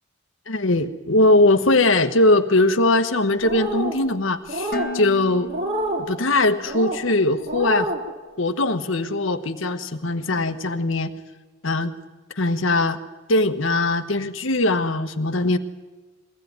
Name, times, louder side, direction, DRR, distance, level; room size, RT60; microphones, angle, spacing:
voice 1, 0.5-5.5 6.0-7.9 8.4-11.1 11.6-11.9 12.4-13.0 13.3-15.6, left 2 dB, 65° left, 8 dB, 1.3 m, -20 dB
sound 1, 3.4-4.0 4.5-4.9 5.5-6.0 6.6-7.0 7.5-8.0, right 1 dB, 50° right, 4.5 m, -27 dB
Dishes pots and pans, 4.7-6.8, left 2 dB, 45° left, 1.2 m, -35 dB
22.5 x 16.5 x 9.4 m, 1.3 s
head